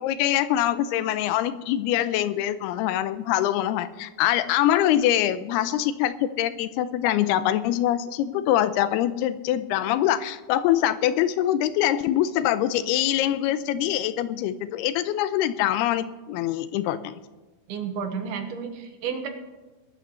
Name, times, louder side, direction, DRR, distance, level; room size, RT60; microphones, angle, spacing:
voice 1, 0.0-17.1, left 12 dB, 90° left, 13 dB, 2.6 m, -24 dB
voice 2, 17.7-19.3, right 6 dB, 75° right, 5 dB, 3.2 m, -31 dB
21.0 x 12.5 x 3.1 m, 1.2 s
omnidirectional pair, 4.6 m